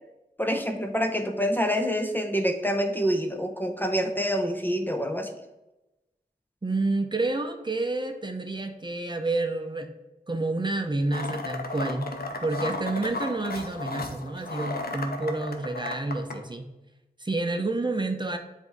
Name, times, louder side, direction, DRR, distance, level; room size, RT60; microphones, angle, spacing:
voice 1, 0.4-5.3, equal, 10° left, 5 dB, 0.6 m, -26 dB
voice 2, 6.6-9.9 10.3-16.7 17.2-18.4, right 2 dB, 30° right, 6 dB, 0.7 m, -29 dB
sound 1, 11.1-16.3, left 3 dB, 70° left, 0.8 m, -34 dB
7.6 x 2.7 x 4.6 m, 1.0 s
cardioid pair, 40°, 16 cm